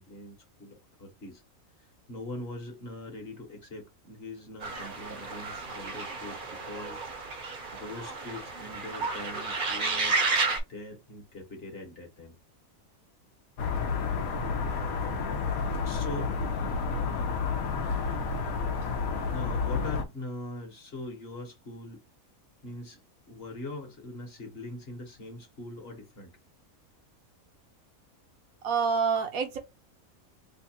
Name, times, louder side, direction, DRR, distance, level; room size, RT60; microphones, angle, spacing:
voice 1, 0.0-1.4 1.8-7.0 7.7-10.2 10.7-12.3 15.8-16.5 19.3-22.0 22.6-23.0 23.3-26.4, left 2 dB, 45° left, 1.3 m, -42 dB
sound 1, 4.6-10.6, right 3 dB, 45° right, 0.8 m, -32 dB
sound 2, 13.6-20.0, left 5 dB, 75° left, 1.2 m, -30 dB
voice 2, 28.6-29.6, right 5 dB, 75° right, 1.3 m, -27 dB
3.4 x 2.3 x 4.2 m
omnidirectional pair, 1.5 m